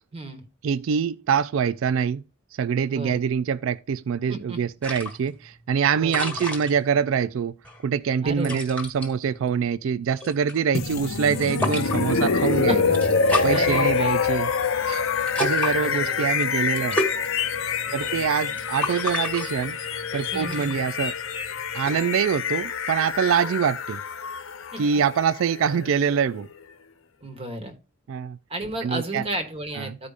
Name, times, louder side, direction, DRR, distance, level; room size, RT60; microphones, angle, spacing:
voice 1, 0.1-0.4 2.9-3.2 4.3-4.6 6.0-6.4 8.2-8.6 12.7-12.8 13.2-14.2 15.6-16.3 17.9-18.3 20.3-20.9 24.7-24.8 27.2-27.7 28.5-30.1, right 1 dB, 30° right, 1.2 m, -33 dB
voice 2, 0.6-2.2 2.6-7.5 7.8-12.8 13.4-14.5 14.9-15.0 15.4-17.0 17.9-19.8 20.1-21.1 21.7-24.0 24.8-26.5 28.1-28.4 28.8-29.2 29.8-30.0, right 7 dB, 65° right, 0.3 m, -24 dB
sound 1, 4.8-22.0, left 1 dB, 5° left, 1.3 m, -35 dB
sound 2, 10.7-26.6, left 5 dB, 65° left, 0.7 m, -26 dB
14.5 x 4.9 x 2.4 m
head